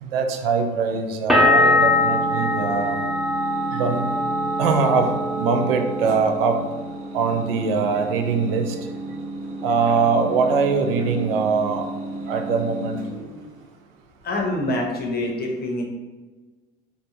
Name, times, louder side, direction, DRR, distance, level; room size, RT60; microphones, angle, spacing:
voice 1, 0.0-3.0 3.7-4.1 4.6-6.6 7.1-8.8 9.6-11.8 12.3-13.0, right 5 dB, 75° right, 5 dB, 0.4 m, -22 dB
sound 1, 1.3-6.9 7.2-8.0, left 2 dB, ahead, 0.5 m, -23 dB
sound 2, 1.4-13.7, right 2 dB, 45° right, 0.9 m, -33 dB
voice 2, 14.2-15.8, left 1 dB, 30° left, 0 dB, 0.7 m, -25 dB
3.0 x 2.0 x 2.6 m, 1.3 s
hypercardioid pair, 70°, 29 cm